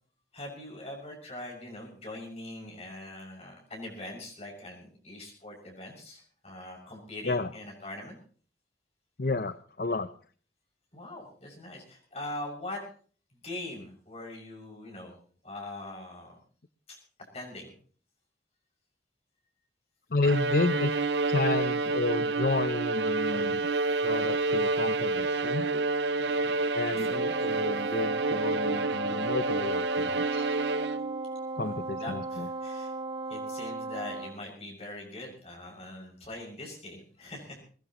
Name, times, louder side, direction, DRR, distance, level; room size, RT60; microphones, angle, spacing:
voice 1, 0.3-8.1 10.9-12.8 13.4-15.2 15.4-16.4 16.9-17.0 17.3-17.7 26.2-26.6 26.9-27.4 31.6-32.9 33.3-37.6, left 1 dB, 35° left, 0 dB, 6.6 m, -42 dB
voice 2, 9.2-10.1 20.1-21.0 21.3-23.7 24.0-25.7 26.7-30.6 31.6-32.5, left 3 dB, 55° left, 12 dB, 0.7 m, -31 dB
Bowed string instrument, 20.2-31.3, right 3 dB, 80° right, 0.6 m, -29 dB
Wind instrument woodwind instrument, 27.1-34.4, right 3 dB, 25° right, 1.5 m, -36 dB
21.0 x 20.0 x 3.1 m, 0.43 s
head